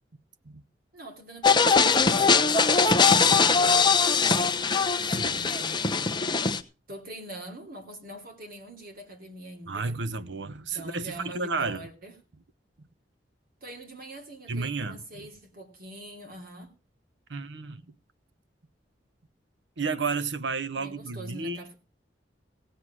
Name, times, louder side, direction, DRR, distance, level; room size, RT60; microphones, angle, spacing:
voice 1, 0.9-4.6 5.3-6.3 6.9-9.9 10.6-12.1 13.6-16.7 17.3-17.4 20.8-21.7, right 1 dB, 55° right, 3.2 m, -44 dB
sound 1, 1.4-6.6, left 5 dB, 25° left, 0.8 m, -21 dB
voice 2, 5.0-5.5 9.7-11.9 12.8-12.9 14.5-15.3 17.3-17.8 19.8-21.6, right 4 dB, 80° right, 0.8 m, -32 dB
16.0 x 7.8 x 6.2 m
head